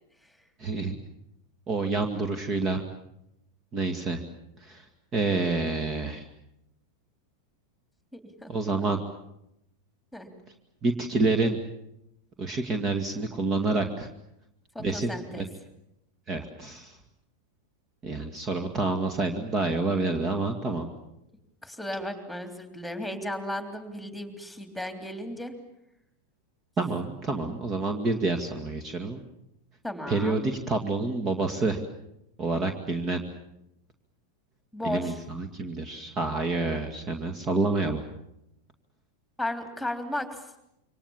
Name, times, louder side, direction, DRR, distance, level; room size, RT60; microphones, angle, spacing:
voice 1, 0.6-1.0 1.7-2.8 3.7-4.2 4.6-4.9 5.1-6.2 8.5-9.0 10.8-11.6 12.4-14.1 14.8-15.4 16.3-17.0 18.0-20.9 26.8-29.2 30.1-31.8 32.4-33.2 34.8-38.0, right 3 dB, 25° right, 6 dB, 2.2 m, -28 dB
voice 2, 8.1-8.8 10.1-10.3 14.7-15.4 21.6-25.5 29.8-30.5 34.7-35.2 39.4-40.4, left 1 dB, ahead, 7 dB, 3.4 m, -35 dB
27.5 x 25.0 x 7.4 m, 0.84 s
figure-of-eight pair, 90°, 0 cm